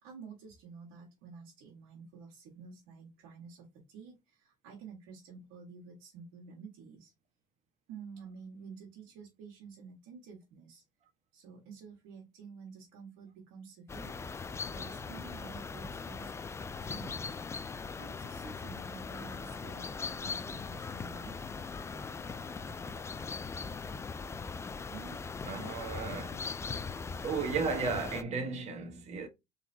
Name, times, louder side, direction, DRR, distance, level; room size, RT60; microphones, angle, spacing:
voice 1, 0.0-7.1 7.9-10.8 11.3-14.2 14.6-17.6 17.9-21.4 24.9-25.2, right 5 dB, 80° right, 1.7 m, -50 dB
sound 1, 13.9-28.2, left 5 dB, 15° left, 0.4 m, -40 dB
voice 2, 25.5-26.5 27.2-29.3, right 5 dB, 45° right, 1.4 m, -34 dB
4.3 x 3.9 x 2.8 m
supercardioid pair, 105°, 16 cm